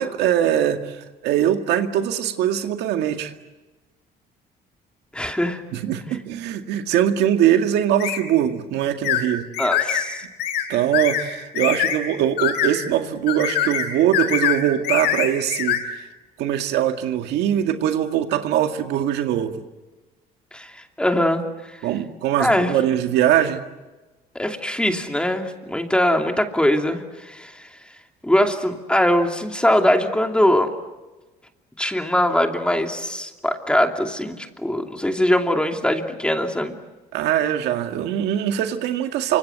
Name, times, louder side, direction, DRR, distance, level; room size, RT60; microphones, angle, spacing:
voice 1, 0.0-3.3 5.7-9.5 10.7-15.8 16.4-19.6 21.8-23.6 37.1-39.4, right 10 dB, 85° right, 6 dB, 2.0 m, -22 dB
voice 2, 5.1-5.6 9.6-10.2 20.5-21.4 21.7-21.9 22.4-22.7 24.3-27.7 28.2-30.7 31.8-36.7, left 1 dB, 5° left, 4 dB, 2.8 m, -21 dB
sound 1, 8.0-8.2 9.0-9.2 9.5-10.0 10.4-10.6 10.9-11.2 11.5-12.0 12.4-12.7 13.3-13.9 14.1-14.6 14.8-15.8, left 10 dB, 85° left, 4.8 m, -23 dB
28.0 x 26.0 x 8.1 m, 1.1 s
cardioid pair, 110°, 17 cm